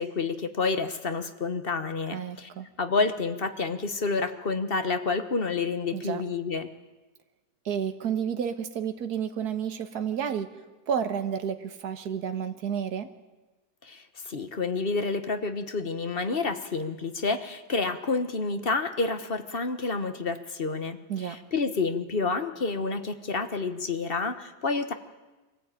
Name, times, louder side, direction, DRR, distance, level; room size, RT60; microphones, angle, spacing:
voice 1, 0.0-2.5 2.8-6.7 13.8-24.9, left 4 dB, 40° left, 9 dB, 1.3 m, -29 dB
voice 2, 2.1-2.7 5.9-6.2 7.7-10.5 10.9-13.1 21.1-21.4, right 8 dB, 70° right, 8 dB, 1.8 m, -31 dB
23.5 x 15.5 x 9.1 m, 1.2 s
omnidirectional pair, 1.7 m